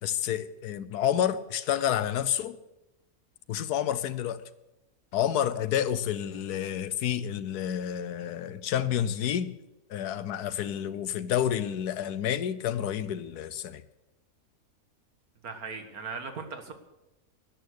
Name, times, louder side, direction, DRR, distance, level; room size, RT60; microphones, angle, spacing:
voice 1, 0.0-2.6 3.5-4.4 5.1-9.5 9.9-13.8, left 10 dB, 85° left, 1.3 m, -29 dB
voice 2, 15.4-16.7, right 4 dB, 70° right, 2.0 m, -38 dB
13.0 x 11.5 x 6.5 m
omnidirectional pair, 1.6 m